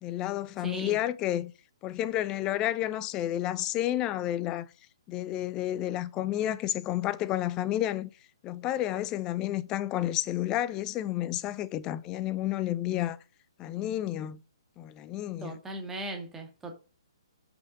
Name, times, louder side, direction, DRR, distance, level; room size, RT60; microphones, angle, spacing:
voice 1, 0.0-1.5 1.8-4.7 5.1-8.1 8.4-13.2 13.6-14.4 14.8-15.6, left 13 dB, 25° left, 0.5 m, -31 dB
voice 2, 0.6-1.0 15.4-16.7, right 1 dB, 10° right, 1.9 m, -38 dB
5.8 x 5.7 x 5.2 m
figure-of-eight pair, 135°, 3 cm